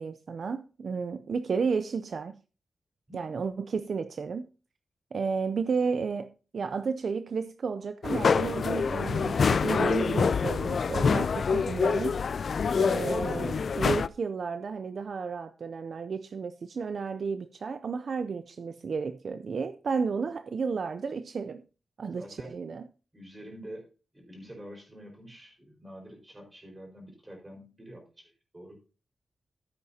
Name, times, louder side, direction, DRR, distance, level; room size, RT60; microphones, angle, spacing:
voice 1, 0.0-2.4 3.1-4.5 5.1-12.2 12.7-21.6 22.0-22.8, right 5 dB, 60° right, 0.5 m, -32 dB
sound 1, 8.0-14.1, left 5 dB, 55° left, 0.4 m, -26 dB
voice 2, 22.1-22.5 23.1-28.8, equal, 20° right, 4.7 m, -47 dB
14.0 x 8.6 x 2.8 m
wide cardioid pair, 145°, 0 cm